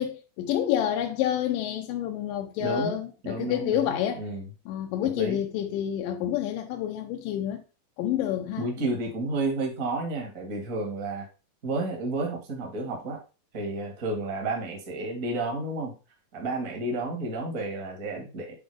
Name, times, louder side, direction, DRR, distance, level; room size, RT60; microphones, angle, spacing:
voice 1, 0.0-4.2 4.7-7.6 8.0-8.6, left 10 dB, 80° left, 2.1 m, -28 dB
voice 2, 2.6-3.0 3.2-4.5 5.0-5.4 8.6-11.3 11.6-13.2 13.5-15.9 16.3-18.5, right 2 dB, 35° right, 1.3 m, -31 dB
8.4 x 4.6 x 3.3 m
omnidirectional pair, 4.3 m